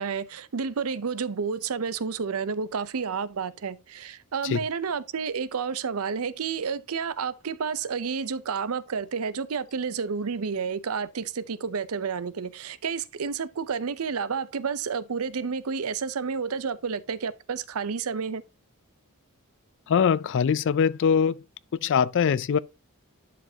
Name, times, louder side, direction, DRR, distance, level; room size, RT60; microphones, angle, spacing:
voice 1, 0.0-18.4, right 5 dB, 75° right, 0.6 m, -30 dB
voice 2, 19.9-21.4 21.7-22.6, left 7 dB, 55° left, 0.3 m, -22 dB
11.0 x 5.1 x 2.8 m
head